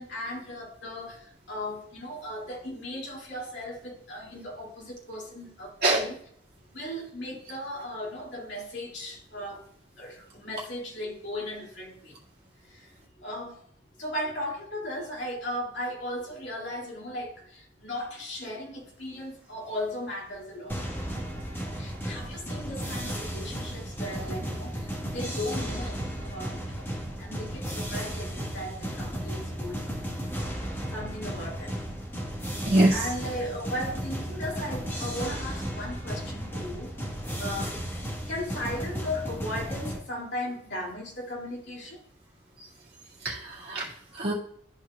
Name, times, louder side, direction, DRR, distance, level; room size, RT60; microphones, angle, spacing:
voice 1, 0.0-6.1 6.7-9.7 10.0-12.2 12.6-13.6 14.0-20.8 21.7-30.0 30.7-31.8 32.5-36.9 37.4-42.0, left 1 dB, 70° left, -4 dB, 2.7 m, -37 dB
sound 1, 20.7-40.0, equal, 10° left, 1.4 m, -34 dB
voice 2, 32.6-33.0 43.2-44.3, right 2 dB, 55° right, -5 dB, 2.1 m, -24 dB
13.0 x 4.6 x 2.4 m, 0.65 s
head